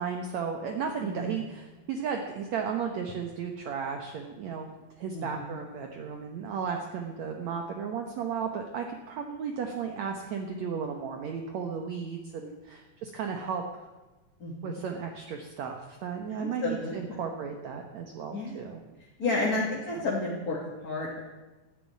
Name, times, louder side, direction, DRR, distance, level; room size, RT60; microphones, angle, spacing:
voice 1, 0.0-4.7 5.0-13.6 14.6-18.8 19.2-19.7, right 6 dB, 60° right, 3 dB, 2.2 m, -34 dB
voice 2, 1.0-1.3 5.1-5.6 14.4-14.8 16.3-16.9 18.3-18.7 19.2-21.2, left 3 dB, 30° left, -4 dB, 2.3 m, -32 dB
14.0 x 11.0 x 9.5 m, 1.1 s
omnidirectional pair, 4.1 m